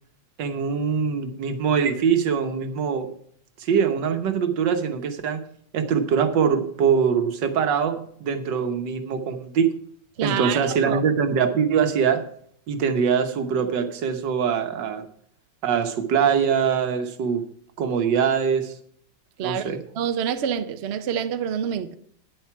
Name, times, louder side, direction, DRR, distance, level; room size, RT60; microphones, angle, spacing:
voice 1, 0.4-3.1 3.6-5.4 5.7-9.7 10.2-12.2 12.7-15.0 15.6-17.4 17.8-18.7 19.4-19.8, right 7 dB, 80° right, 1.7 m, -23 dB
voice 2, 10.2-11.0 19.4-21.9, right 8 dB, 60° right, 0.7 m, -27 dB
9.8 x 7.8 x 5.8 m
omnidirectional pair, 1.9 m